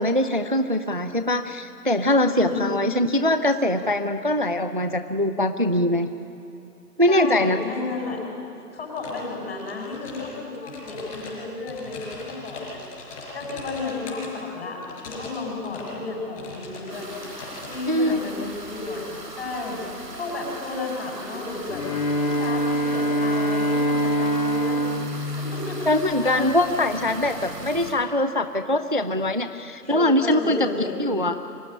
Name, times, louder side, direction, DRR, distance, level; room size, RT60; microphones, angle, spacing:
voice 1, 0.0-6.1 7.0-7.6 17.9-18.2 25.9-30.7 31.0-31.3, left 1 dB, 35° right, 9 dB, 0.5 m, -22 dB
voice 2, 2.3-2.8 7.1-8.3 8.7-12.8 13.3-17.1 17.7-19.8 20.2-21.9 22.2-24.9 25.4-25.9 26.2-27.0 29.8-31.0, left 3 dB, 40° left, 0 dB, 6.7 m, -32 dB
sound 1, 9.0-9.3 9.6-10.3 10.6-14.3 14.8-15.4 15.6-16.0 16.4-17.8, left 3 dB, 20° left, 5.0 m, -40 dB
sound 2, 16.9-27.9, right 2 dB, 90° right, 5.8 m, -39 dB
Bowed string instrument, 21.7-26.3, equal, 55° left, 3.3 m, -24 dB
24.5 x 19.0 x 10.0 m, 2.6 s
hypercardioid pair, 170°, 48 cm